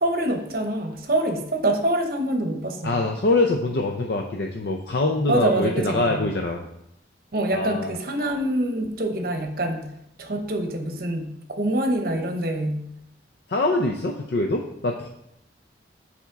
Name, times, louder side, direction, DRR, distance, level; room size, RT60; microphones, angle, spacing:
voice 1, 0.0-3.0 5.3-6.3 7.3-9.9 10.2-12.8, right 1 dB, 50° right, 5 dB, 0.9 m, -25 dB
voice 2, 2.8-6.6 7.5-7.9 13.5-15.1, left 2 dB, 60° left, 2 dB, 0.5 m, -24 dB
7.0 x 4.3 x 4.6 m, 0.79 s
head